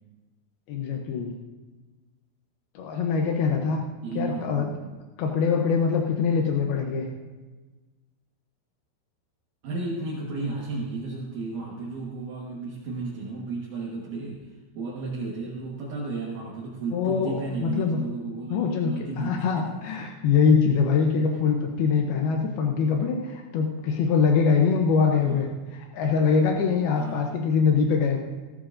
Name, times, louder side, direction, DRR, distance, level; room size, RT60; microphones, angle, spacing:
voice 1, 0.7-1.4 2.8-3.8 4.1-4.7 5.2-7.1 16.9-18.0 18.5-28.2, left 5 dB, 85° left, 2 dB, 2.2 m, -23 dB
voice 2, 4.0-4.8 9.6-19.6 20.0-20.1 25.2-25.5 26.9-27.4, right 3 dB, 60° right, -4 dB, 2.3 m, -34 dB
17.5 x 14.5 x 2.6 m, 1.3 s
omnidirectional pair, 5.6 m